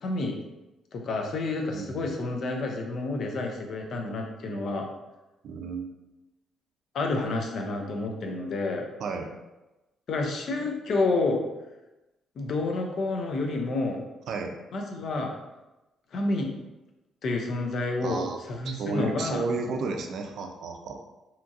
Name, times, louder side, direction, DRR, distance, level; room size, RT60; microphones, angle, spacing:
voice 1, 0.0-0.4 0.9-4.9 6.9-8.8 10.1-11.4 12.4-14.0 14.7-15.3 16.1-16.5 17.2-19.4, left 3 dB, 60° left, 2 dB, 0.5 m, -29 dB
voice 2, 1.7-2.1 5.4-6.0 9.0-9.3 14.3-14.6 18.0-21.0, right 4 dB, 70° right, 4 dB, 0.4 m, -33 dB
2.8 x 2.6 x 2.4 m, 1.0 s
cardioid pair, 90°, 0 cm